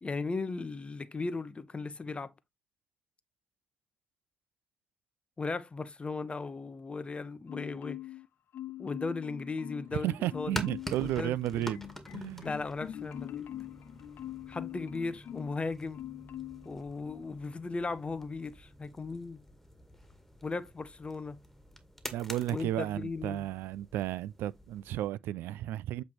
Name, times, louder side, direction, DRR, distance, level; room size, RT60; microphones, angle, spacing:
voice 1, 0.0-2.3 5.4-8.0 8.8-10.6 11.0-11.4 12.4-13.5 14.5-16.1 16.6-19.4 20.4-21.4 22.5-23.5, left 3 dB, 30° left, 0.8 m, -37 dB
Marimba xylophone, 7.5-8.3 8.5-10.0 10.3-11.0 11.4-15.6 15.9-16.7 17.1-17.3, left 12 dB, 65° left, 0.3 m, -43 dB
voice 2, 9.9-11.8 12.1-12.5 22.1-26.0, right 13 dB, 75° right, 0.3 m, -33 dB
sound 1, 10.3-25.1, equal, 5° left, 2.0 m, -46 dB
7.7 x 3.2 x 4.3 m
hypercardioid pair, 45°, 4 cm